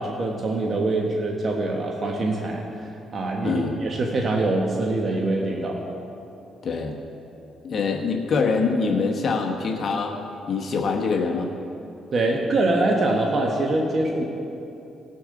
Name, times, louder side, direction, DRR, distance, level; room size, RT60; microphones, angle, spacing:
voice 1, 0.0-5.9 12.1-14.2, right 2 dB, 45° right, 0 dB, 1.2 m, -24 dB
voice 2, 6.6-6.9 7.6-10.2 10.5-11.5, left 4 dB, 50° left, 2 dB, 1.1 m, -24 dB
19.0 x 6.7 x 3.8 m, 2.8 s
cardioid pair, 90°, 0 cm